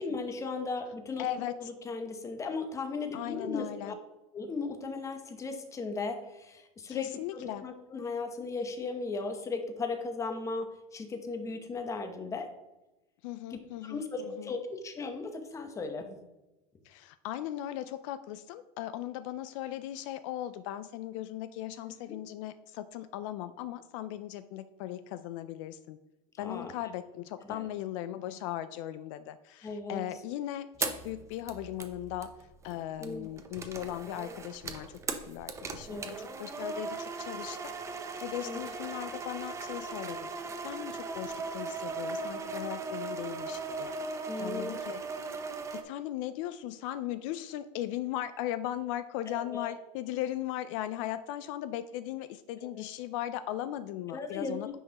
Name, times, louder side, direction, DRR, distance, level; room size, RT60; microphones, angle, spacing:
voice 1, 0.0-1.3 1.6-3.9 4.3-12.5 13.8-16.2 26.3-26.7 27.5-27.7 29.6-30.0 33.0-33.3 35.9-36.1 38.4-38.6 44.3-44.8 49.3-49.7 52.6-52.9 54.1-54.8, left 3 dB, 15° left, 7 dB, 0.8 m, -37 dB
voice 2, 1.2-1.7 3.1-3.9 6.9-7.6 13.2-14.5 16.8-26.0 26.4-40.3 40.6-45.0 45.7-54.8, left 12 dB, 65° left, 12 dB, 0.4 m, -38 dB
sound 1, 30.8-45.8, right 4 dB, 15° right, 0.7 m, -38 dB
9.7 x 5.4 x 2.9 m, 1.0 s
supercardioid pair, 140°, 18 cm